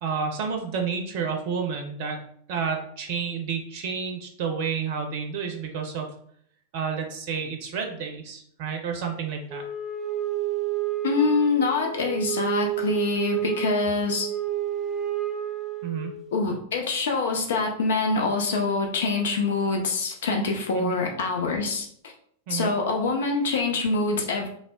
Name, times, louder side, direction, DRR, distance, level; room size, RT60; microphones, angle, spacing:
voice 1, 0.0-2.2 2.5-6.1 6.7-9.6 15.8-16.1 20.7-21.0 22.5-22.7, right 6 dB, 45° right, 4 dB, 0.5 m, -30 dB
Wind instrument woodwind instrument, 9.5-16.3, right 10 dB, 5° right, 0.6 m, -30 dB
voice 2, 11.0-14.3 16.3-22.1 22.5-24.5, left 3 dB, 60° left, 2 dB, 0.5 m, -25 dB
3.3 x 2.0 x 3.6 m, 0.63 s
figure-of-eight pair, 90°, 0 cm